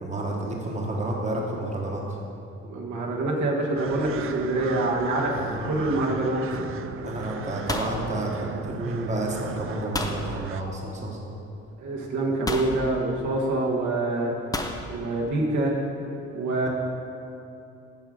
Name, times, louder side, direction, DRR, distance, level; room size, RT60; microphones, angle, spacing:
voice 1, 0.0-2.2 5.3-5.8 7.0-11.3, right 1 dB, 25° right, -1 dB, 1.3 m, -30 dB
voice 2, 2.6-6.6 11.8-14.3 14.9-15.7 16.3-16.7, right 2 dB, 70° right, -2 dB, 1.4 m, -26 dB
sound 1, 3.8-10.6, right 8 dB, 45° right, 0.4 m, -38 dB
sound 2, 7.7-8.9 9.9-10.3 11.4-11.5 12.5-12.8 14.5-14.8, left 2 dB, 10° left, 0.6 m, -31 dB
7.7 x 4.9 x 6.4 m, 2.8 s
cardioid pair, 90°, 30 cm